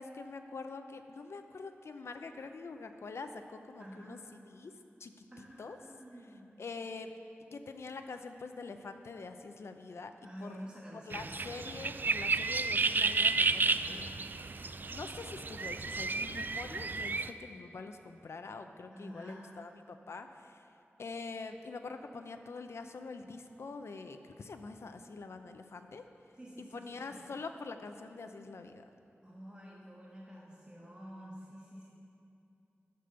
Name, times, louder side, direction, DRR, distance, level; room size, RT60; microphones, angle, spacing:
voice 1, 0.0-4.2 4.5-5.8 6.6-7.1 7.5-10.7 11.1-14.1 14.9-26.0 26.6-28.8, left 4 dB, 75° left, 7 dB, 0.6 m, -45 dB
voice 2, 3.8-4.2 5.3-6.5 10.2-11.3 13.7-14.2 18.9-19.4 26.3-27.2 29.2-31.9, equal, 20° right, -5 dB, 1.6 m, -49 dB
sound 1, 11.1-17.3, right 4 dB, 45° right, 0.3 m, -32 dB
11.0 x 6.8 x 6.8 m, 2.6 s
wide cardioid pair, 95°, 5 cm